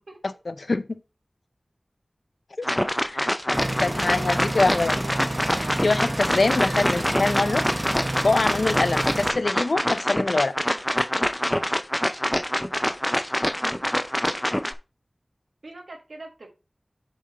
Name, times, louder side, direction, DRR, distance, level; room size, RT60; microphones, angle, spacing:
voice 1, 0.2-1.0 3.0-5.0 5.8-7.6 8.2-10.5, left 3 dB, 80° left, 0.5 m, -24 dB
sound 1, 2.6-14.7, left 1 dB, 15° left, 0.5 m, -25 dB
sound 2, 3.5-9.3, right 1 dB, 25° right, 0.8 m, -29 dB
voice 2, 13.6-14.0 15.6-16.5, right 2 dB, 85° right, 1.4 m, -42 dB
7.5 x 3.8 x 3.9 m
wide cardioid pair, 40°, 0 cm